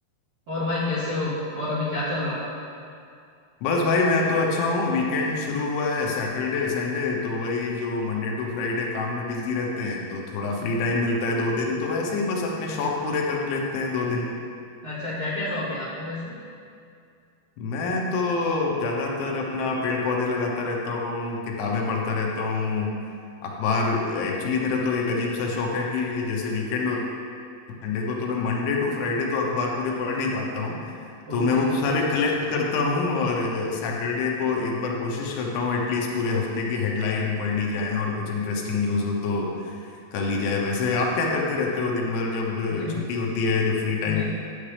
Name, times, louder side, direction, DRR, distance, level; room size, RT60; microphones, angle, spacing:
voice 1, 0.5-2.4 14.8-16.3 31.3-31.7 42.7-42.9 44.0-44.2, left 2 dB, 60° right, -13 dB, 1.4 m, -29 dB
voice 2, 3.6-14.3 17.6-22.9 23.4-27.0 27.8-44.2, left 3 dB, 85° left, -1 dB, 3.4 m, -26 dB
10.0 x 8.5 x 3.4 m, 2.4 s
omnidirectional pair, 5.4 m